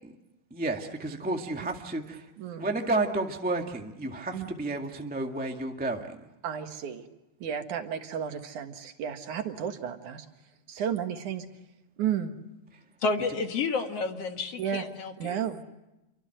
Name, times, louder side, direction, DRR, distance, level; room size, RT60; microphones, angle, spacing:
voice 1, 0.5-2.2 2.6-6.1, right 2 dB, 5° right, 3 dB, 1.1 m, -31 dB
voice 2, 6.4-7.0 7.4-10.2 10.7-11.5 12.0-12.3 14.6-14.8 15.2-15.6, right 8 dB, 70° right, 6 dB, 3.1 m, -32 dB
voice 3, 13.0-15.4, left 4 dB, 55° left, 5 dB, 2.5 m, -30 dB
28.0 x 24.5 x 7.8 m, 0.96 s
omnidirectional pair, 3.6 m